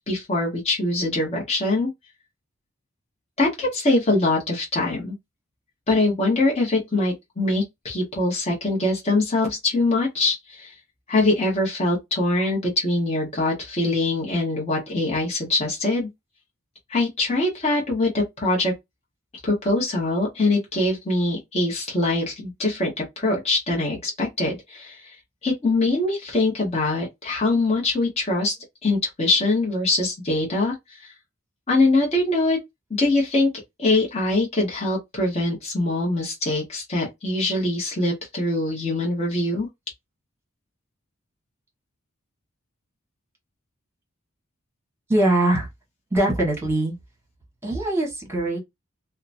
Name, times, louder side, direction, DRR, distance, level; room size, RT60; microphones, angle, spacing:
voice 1, 0.1-1.9 3.4-5.1 5.9-10.7 11.1-16.1 16.9-18.7 19.4-25.2 25.4-28.6 28.8-31.1 31.7-32.6 33.0-33.5 33.8-39.7, left 2 dB, 30° left, 1.0 m, -23 dB
voice 2, 45.1-45.7 46.1-46.9 47.6-48.6, right 1 dB, 10° right, 1.3 m, -22 dB
2.8 x 2.2 x 2.5 m
head